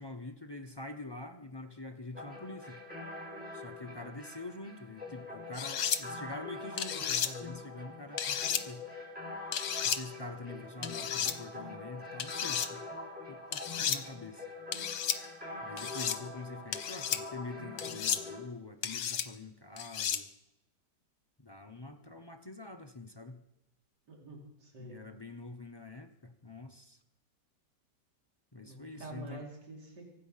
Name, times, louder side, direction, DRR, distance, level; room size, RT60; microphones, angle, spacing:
voice 1, 0.0-2.8 3.5-8.8 9.8-14.5 15.6-20.3 21.4-23.4 24.8-27.0 28.5-29.4, left 2 dB, 25° left, 6 dB, 0.5 m, -45 dB
sound 1, 2.1-18.4, left 2 dB, 5° right, 6.3 m, -44 dB
sound 2, 5.5-6.0 6.8-7.3 8.2-8.6 9.5-10.0 10.8-11.3 12.2-12.7 13.5-14.0 14.7-15.2 15.8-16.2 16.7-17.2 17.8-18.2 18.8-19.3 19.8-20.2, left 8 dB, 70° left, 1.4 m, -33 dB
voice 2, 24.1-25.0 28.6-30.1, right 2 dB, 75° right, -2 dB, 3.5 m, -47 dB
24.5 x 9.1 x 5.7 m, 0.90 s
omnidirectional pair, 1.8 m